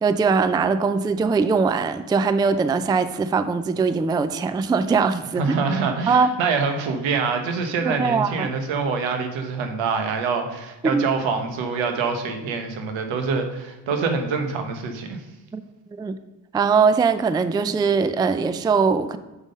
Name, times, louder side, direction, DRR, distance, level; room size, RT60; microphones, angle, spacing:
voice 1, 0.0-5.4 6.1-6.3 7.8-8.5 10.9-11.1 15.5-15.6 15.9-16.1 16.5-19.2, right 5 dB, 10° right, 12 dB, 0.3 m, -21 dB
voice 2, 5.4-15.2, right 5 dB, 80° right, 5 dB, 1.2 m, -25 dB
6.3 x 5.3 x 5.2 m, 1.1 s
supercardioid pair, 60°, 45 cm